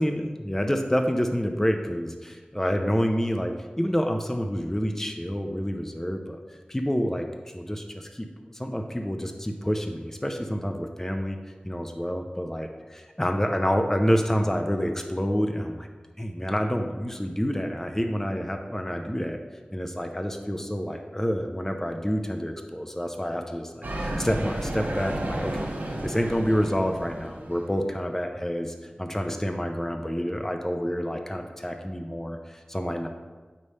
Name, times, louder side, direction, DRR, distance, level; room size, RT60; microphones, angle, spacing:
voice 1, 0.0-6.2 6.7-7.3 7.5-8.3 8.5-11.4 11.6-15.9 16.2-19.4 19.7-25.7 26.0-33.1, equal, 15° left, 4 dB, 0.6 m, -28 dB
sound 1, 23.8-27.8, right 1 dB, 80° right, 1.4 m, -32 dB
8.4 x 3.2 x 5.5 m, 1.3 s
wide cardioid pair, 45°, 3 cm